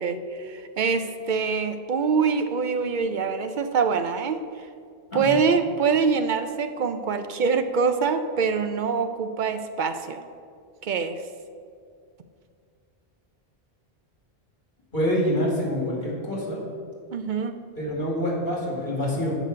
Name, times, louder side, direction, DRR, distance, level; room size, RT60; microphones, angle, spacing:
voice 1, 0.0-4.4 5.1-10.2 10.8-11.2 17.1-17.6, right 5 dB, 60° right, 9 dB, 0.6 m, -24 dB
voice 2, 14.9-16.6 17.8-19.3, equal, 50° left, -4 dB, 2.4 m, -26 dB
8.2 x 5.0 x 6.6 m, 2.2 s
omnidirectional pair, 1.1 m